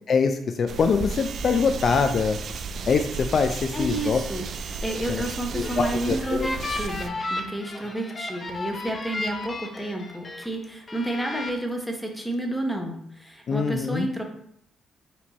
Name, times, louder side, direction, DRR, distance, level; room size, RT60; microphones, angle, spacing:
voice 1, 0.1-2.4 2.9-4.2 5.1-5.2 5.5-6.5 13.5-14.1, left 5 dB, 50° left, 7 dB, 0.4 m, -23 dB
sound 1, 0.7-7.1, right 4 dB, 60° right, 0.4 m, -34 dB
voice 2, 3.7-14.2, right 1 dB, ahead, 2 dB, 0.9 m, -31 dB
sound 2, 5.4-10.5 10.9-11.5, left 2 dB, 30° left, 0.7 m, -34 dB
4.4 x 2.8 x 4.1 m, 0.69 s
cardioid pair, 90°, 0 cm